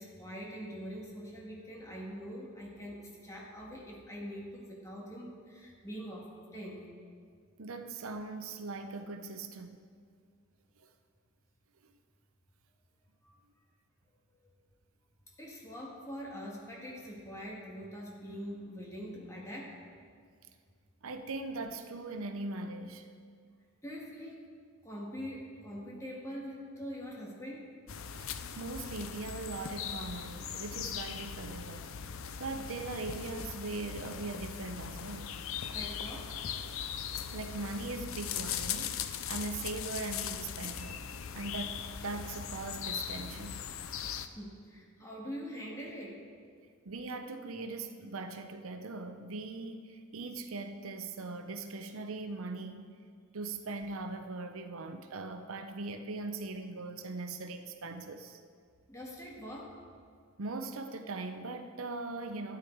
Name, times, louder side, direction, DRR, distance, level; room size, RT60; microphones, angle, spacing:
voice 1, 0.0-6.9 13.2-13.4 15.4-19.7 23.8-24.4 24.8-27.7 35.7-36.3 44.4-46.2 58.9-59.7, equal, 15° left, -3 dB, 1.8 m, -43 dB
voice 2, 7.6-9.8 10.8-10.9 21.0-23.1 28.2-31.9 32.4-35.3 37.3-41.0 41.3-43.7 46.8-53.0 53.3-58.4 60.4-62.6, right 3 dB, 80° right, 7 dB, 0.7 m, -40 dB
sound 1, 27.9-44.3, left 8 dB, 70° left, 0.6 m, -39 dB
12.5 x 9.7 x 4.6 m, 2.1 s
head